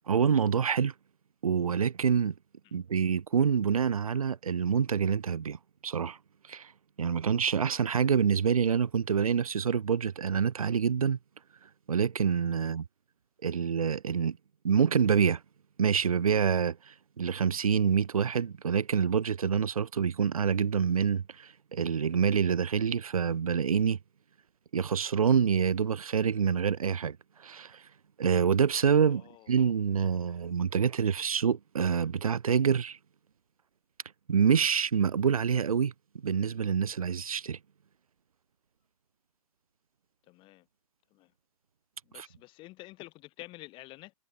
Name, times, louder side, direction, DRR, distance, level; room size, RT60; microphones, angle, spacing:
voice 1, 0.1-0.9 1.4-2.3 2.7-5.6 5.8-6.2 6.5-6.7 7.0-11.2 11.9-12.8 13.4-14.4 14.6-15.4 15.8-24.0 24.7-27.2 27.4-27.8 28.2-29.2 29.5-33.0 34.3-35.9 36.2-37.6 42.2-42.3, right 7 dB, 70° right, 1.1 m, -26 dB
voice 2, 29.0-29.5 40.3-40.7 41.1-41.3 42.0-44.1, left 19 dB, 25° left, 7.5 m, -49 dB
figure-of-eight pair, 125°, 19 cm